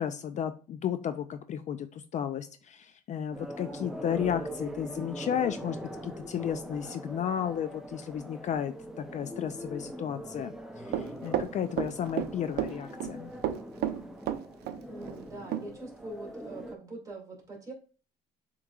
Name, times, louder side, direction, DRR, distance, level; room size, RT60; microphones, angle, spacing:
voice 1, 0.0-5.8 6.0-10.5 10.8-13.3, left 9 dB, 45° left, 10 dB, 0.4 m, -33 dB
sound 1, 3.3-16.8, equal, 5° right, 0.6 m, -42 dB
Run, 10.9-12.3 12.6-13.1 13.4-14.8 15.1-15.2 15.5-15.6, right 11 dB, 70° right, 0.6 m, -31 dB
voice 2, 14.9-17.7, right 2 dB, 20° right, -1 dB, 2.2 m, -43 dB
7.2 x 3.0 x 2.3 m, 0.37 s
cardioid pair, 110°, 17 cm